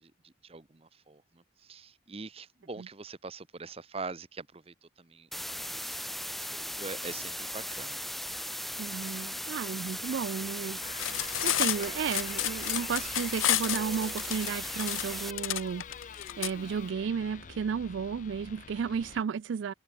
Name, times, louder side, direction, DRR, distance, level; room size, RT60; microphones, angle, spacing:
voice 1, 0.0-8.0 11.0-11.6, right 4 dB, 30° right, 0.8 m, -44 dB
sound 1, 5.3-15.3, equal, ahead, 1.1 m, -37 dB
voice 2, 8.8-19.7, right 6 dB, 70° right, 0.3 m, -33 dB
sound 2, 10.8-19.2, left 7 dB, 40° left, 0.4 m, -46 dB
Cutlery silverware, 10.9-16.5, left 14 dB, 85° left, 0.7 m, -31 dB
head